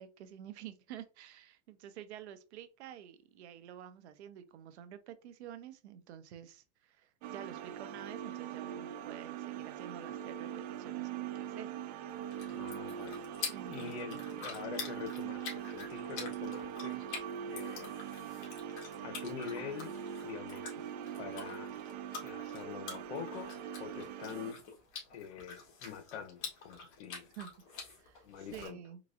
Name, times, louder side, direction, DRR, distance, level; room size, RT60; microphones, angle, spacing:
voice 1, 0.0-11.7 13.5-14.1 27.4-29.0, right 10 dB, 75° right, 0.7 m, -49 dB
sound 1, 7.2-24.5, right 9 dB, 40° right, 0.4 m, -42 dB
sound 2, 12.1-28.7, left 5 dB, 40° left, 1.5 m, -47 dB
voice 2, 12.4-17.1 17.5-17.9 19.0-20.0 20.2-20.8 21.2-21.7 22.2-24.6 25.1-27.3 28.2-28.8, left 7 dB, 75° left, 0.8 m, -45 dB
3.9 x 3.0 x 2.4 m
supercardioid pair, 150°, 34 cm